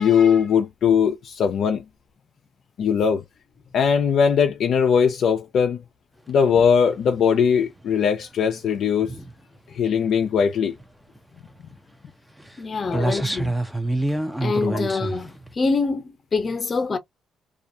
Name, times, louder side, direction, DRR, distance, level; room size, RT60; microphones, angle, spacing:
voice 1, 0.0-1.8 2.8-3.2 3.7-5.8 6.3-9.2 9.7-10.7 12.9-13.2, left 7 dB, 65° left, 0.5 m, -20 dB
sound 1, 6.9-7.5 7.8-8.2 8.7-9.3 10.2-10.6 10.8-10.9 11.2-11.3 11.5-11.8 12.4-12.5 12.8-15.5, right 2 dB, 5° right, 0.6 m, -27 dB
voice 2, 12.6-13.6 14.4-17.0, left 4 dB, 40° left, 0.8 m, -25 dB
2.4 x 2.2 x 2.7 m
cardioid pair, 80°, 0 cm